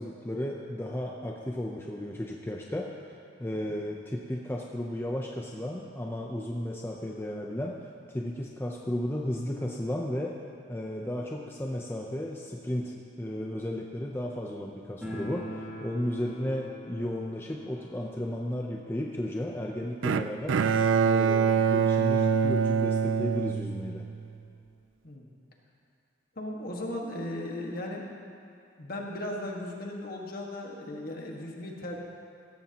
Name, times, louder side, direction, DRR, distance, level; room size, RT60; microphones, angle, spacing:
voice 1, 0.0-7.8 8.1-10.4 10.7-20.6 21.0-24.0, left 1 dB, 10° left, 0 dB, 0.6 m, -34 dB
sound 1, 15.0-21.7 22.0-22.1 22.3-22.4 23.2-23.3 23.6-24.8, equal, 5° right, 2.9 m, -45 dB
Bowed string instrument, 20.0-24.2, right 6 dB, 90° right, 0.4 m, -25 dB
voice 2, 26.3-28.0 28.8-32.0, left 1 dB, 50° left, -1 dB, 1.6 m, -36 dB
16.5 x 14.0 x 2.9 m, 2.3 s
head